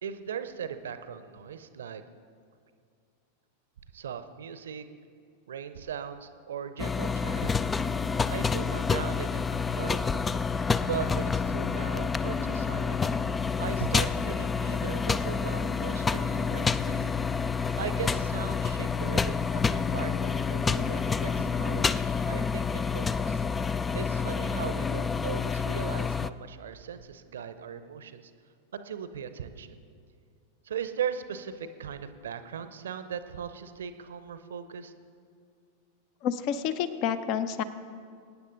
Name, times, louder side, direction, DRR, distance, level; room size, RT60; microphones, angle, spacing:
voice 1, 0.0-2.0 3.9-4.8 5.5-7.6 8.0-10.2 10.8-13.1 13.6-17.1 17.5-21.9 22.2-23.4 23.9-28.3 28.7-29.8 30.6-34.9, right 8 dB, 65° right, 11 dB, 0.7 m, -38 dB
sound 1, 6.8-26.3, left 5 dB, 15° left, 0.3 m, -28 dB
voice 2, 36.2-37.6, left 8 dB, 40° left, 13 dB, 0.7 m, -29 dB
23.0 x 9.7 x 3.9 m, 2.3 s
figure-of-eight pair, 90°, 0 cm